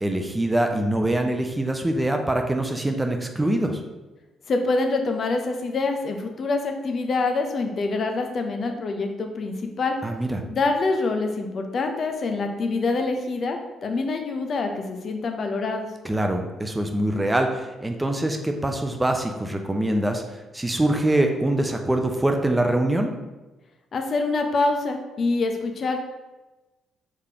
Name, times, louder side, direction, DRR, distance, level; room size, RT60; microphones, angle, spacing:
voice 1, 0.0-3.8 10.0-10.4 16.0-23.1, right 1 dB, 15° right, 4 dB, 0.6 m, -24 dB
voice 2, 4.5-10.0 10.5-15.9 23.9-26.0, left 3 dB, 55° left, 5 dB, 0.6 m, -25 dB
4.9 x 3.6 x 2.8 m, 1.1 s
hypercardioid pair, 45°, 0 cm